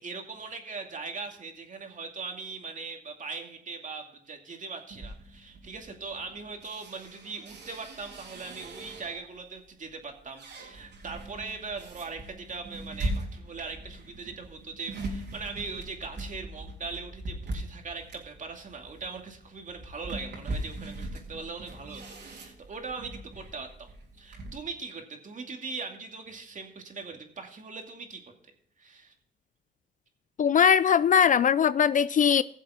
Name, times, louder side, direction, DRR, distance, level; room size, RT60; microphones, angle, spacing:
voice 1, 0.0-23.9 24.2-28.2 28.8-29.1, right 4 dB, 40° right, 2.5 m, -40 dB
sound 1, 4.9-9.4 9.9-24.6, right 1 dB, 60° right, 3.6 m, -40 dB
voice 2, 30.4-32.4, left 8 dB, 40° left, 0.4 m, -21 dB
17.0 x 7.4 x 3.7 m
cardioid pair, 90°, 20 cm